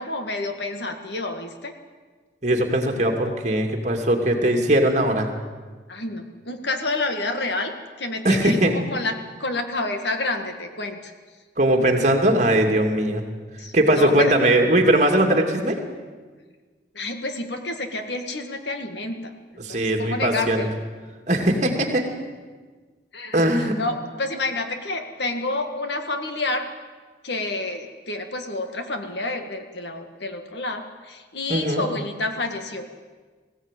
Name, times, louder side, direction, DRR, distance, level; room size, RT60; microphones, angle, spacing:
voice 1, 0.0-1.7 5.9-7.7 8.0-9.1 9.4-11.1 13.6-14.3 16.9-19.3 19.7-20.8 23.1-26.7 27.2-32.9, left 2 dB, 70° left, 6 dB, 2.0 m, -29 dB
voice 2, 2.4-5.3 8.2-8.7 11.6-13.3 13.7-15.8 19.6-20.7 21.3-22.0 23.3-23.7 31.5-31.8, right 1 dB, 40° right, 3 dB, 2.7 m, -20 dB
20.5 x 16.0 x 9.2 m, 1.4 s
head